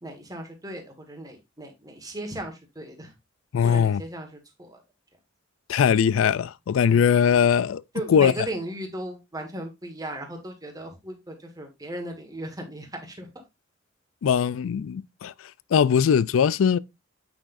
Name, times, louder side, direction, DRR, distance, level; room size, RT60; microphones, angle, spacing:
voice 1, 0.0-3.1 3.6-4.8 6.8-7.1 7.9-13.3, right 1 dB, 20° right, 1.6 m, -37 dB
voice 2, 3.5-4.0 5.7-7.8 8.1-8.3 14.2-16.8, left 7 dB, 85° left, 0.4 m, -21 dB
8.8 x 6.0 x 2.6 m
head